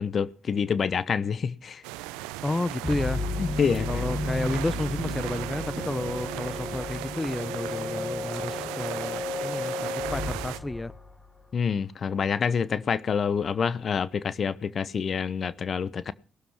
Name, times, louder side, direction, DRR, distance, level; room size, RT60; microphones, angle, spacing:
voice 1, 0.0-1.8 3.4-4.1 11.5-16.1, left 6 dB, 55° left, 1.0 m, -27 dB
sound 1, 1.8-10.6, right 16 dB, 80° right, 0.7 m, -37 dB
voice 2, 2.4-3.2 3.9-10.9, left 2 dB, 20° left, 0.8 m, -31 dB
sound 2, 2.8-11.5, left 3 dB, 35° left, 4.5 m, -33 dB
19.0 x 12.5 x 6.0 m
hypercardioid pair, 40°, 0 cm